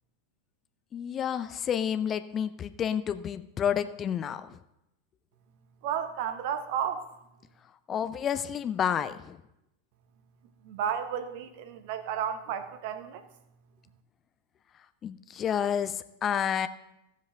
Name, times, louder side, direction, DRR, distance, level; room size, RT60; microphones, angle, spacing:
voice 1, 0.9-4.6 7.9-9.4 15.0-16.7, left 8 dB, 25° left, 12 dB, 0.4 m, -30 dB
voice 2, 5.8-7.0 10.6-13.2, right 8 dB, 50° right, 10 dB, 0.9 m, -32 dB
15.0 x 7.5 x 3.6 m, 0.85 s
figure-of-eight pair, 90°, 0 cm